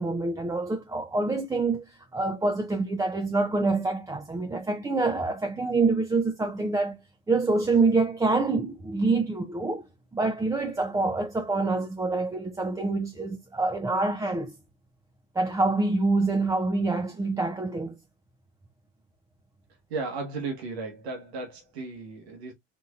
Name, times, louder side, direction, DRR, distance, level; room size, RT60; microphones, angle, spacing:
voice 1, 0.0-7.0 7.3-9.8 10.1-14.5 15.4-18.0, right 3 dB, 10° right, 0.5 m, -26 dB
voice 2, 19.9-22.5, right 3 dB, 85° right, 1.4 m, -35 dB
4.3 x 2.6 x 2.4 m
supercardioid pair, 100°, 31 cm